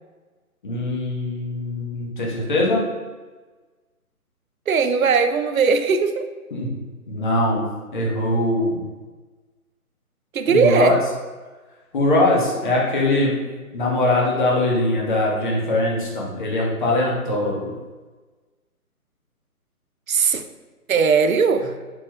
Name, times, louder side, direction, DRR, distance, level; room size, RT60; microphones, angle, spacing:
voice 1, 0.6-2.8 6.5-6.7 7.1-7.6 7.9-8.8 10.5-11.0 11.9-13.4 13.7-17.7, left 1 dB, 35° left, -3 dB, 1.1 m, -21 dB
voice 2, 4.7-6.3 10.3-11.0 20.1-20.4 20.9-21.7, right 5 dB, 65° right, 9 dB, 0.6 m, -19 dB
5.7 x 4.0 x 2.2 m, 1.3 s
figure-of-eight pair, 150°, 45 cm